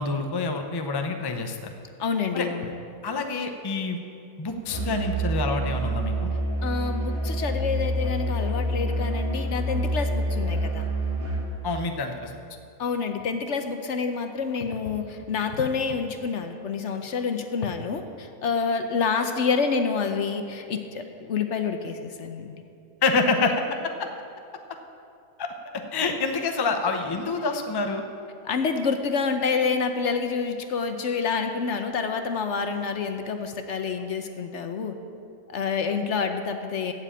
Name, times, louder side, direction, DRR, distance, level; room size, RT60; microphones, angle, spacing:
voice 1, 0.0-1.7 2.3-2.5 3.0-4.0 4.4-6.3 11.6-12.3 23.0-23.6 23.8-24.1 25.4-28.0, left 4 dB, 25° left, 5 dB, 0.6 m, -27 dB
voice 2, 2.0-2.7 6.6-10.9 12.8-22.6 28.4-34.9 35.5-36.9, left 5 dB, 60° left, 7 dB, 1.0 m, -28 dB
Musical instrument, 4.7-11.6, right 1 dB, 90° right, 2.4 m, -27 dB
15.0 x 5.1 x 8.7 m, 2.6 s
omnidirectional pair, 1.5 m